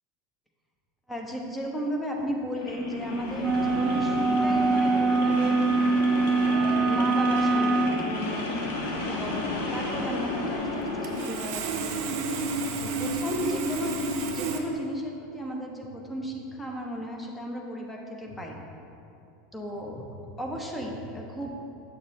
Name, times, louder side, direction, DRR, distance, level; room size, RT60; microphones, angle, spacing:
voice 1, 1.1-6.1 6.4-14.0 14.3-18.6 19.5-21.5, equal, 10° left, 0 dB, 1.1 m, -35 dB
sound 1, 2.5-11.4, left 2 dB, 65° left, 1.1 m, -32 dB
sound 2, 3.4-8.0, right 3 dB, 15° right, 0.5 m, -24 dB
Sawing, 10.6-10.7 11.0-14.6, right 3 dB, 55° right, 0.7 m, -31 dB
7.4 x 6.5 x 3.2 m, 2.7 s
figure-of-eight pair, 80°, 0 cm